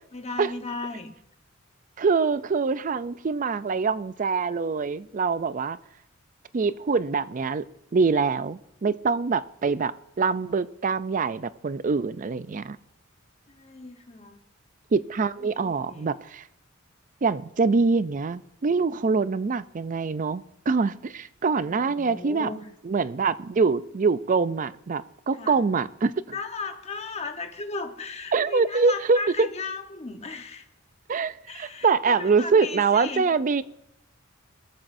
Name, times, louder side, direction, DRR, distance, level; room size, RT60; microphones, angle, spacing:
voice 1, 0.1-1.1 13.5-14.4 15.4-16.1 21.6-22.7 25.3-25.6 26.3-30.7 31.5-33.3, left 3 dB, 30° left, 5 dB, 1.1 m, -36 dB
voice 2, 2.0-5.8 6.5-7.6 7.9-12.8 14.9-16.4 17.2-22.5 22.8-26.1 28.3-29.2 31.1-33.6, right 4 dB, 40° right, 15 dB, 0.4 m, -24 dB
20.5 x 14.0 x 2.6 m, 0.86 s
head